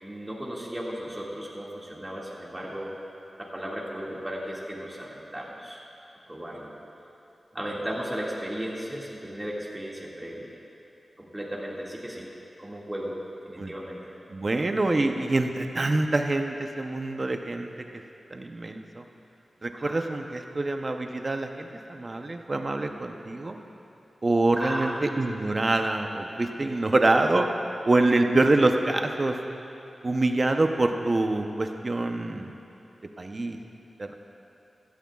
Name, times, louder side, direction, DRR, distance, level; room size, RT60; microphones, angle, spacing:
voice 1, 0.0-2.9 3.4-5.8 6.3-6.7 7.5-10.5 11.2-12.3 12.6-13.1 13.5-14.0 19.7-20.0 24.6-25.3, equal, 15° right, -4 dB, 2.1 m, -35 dB
voice 2, 14.3-17.7 18.3-19.0 19.6-23.6 24.2-27.5 27.8-29.3 30.0-32.5 33.2-33.6 34.0-34.1, right 2 dB, 40° right, 5 dB, 0.8 m, -25 dB
16.0 x 13.0 x 2.4 m, 3.0 s
wide cardioid pair, 80°, 0 cm